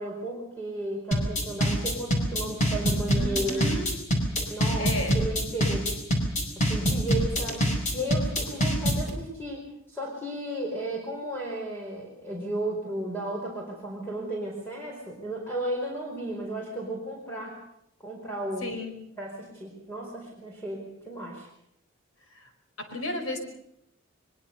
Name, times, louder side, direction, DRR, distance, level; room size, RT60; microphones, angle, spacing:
voice 1, 0.0-3.7 4.5-6.0 6.5-9.6 9.9-17.6 18.0-18.7 19.2-21.5, right 1 dB, 10° left, -2 dB, 5.0 m, -34 dB
sound 1, 1.1-9.1, equal, 35° left, 5.1 m, -25 dB
voice 2, 3.1-3.9 4.8-5.1 18.6-18.9 22.3-22.5 22.8-23.4, left 2 dB, 75° left, 6 dB, 5.0 m, -33 dB
22.5 x 22.0 x 6.8 m, 0.76 s
head